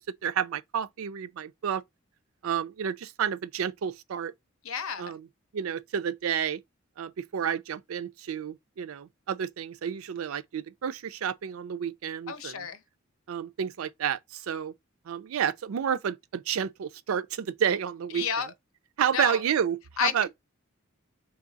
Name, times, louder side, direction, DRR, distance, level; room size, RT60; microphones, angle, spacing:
voice 1, 0.0-1.8 2.4-4.3 5.0-5.3 5.5-6.6 7.0-12.7 13.3-14.7 15.1-18.3 19.0-20.3, right 8 dB, 85° right, 0.4 m, -30 dB
voice 2, 4.6-5.1 12.3-12.8 18.1-18.5 19.1-19.4 20.0-20.3, left 7 dB, 85° left, 0.7 m, -31 dB
3.5 x 3.0 x 3.9 m
head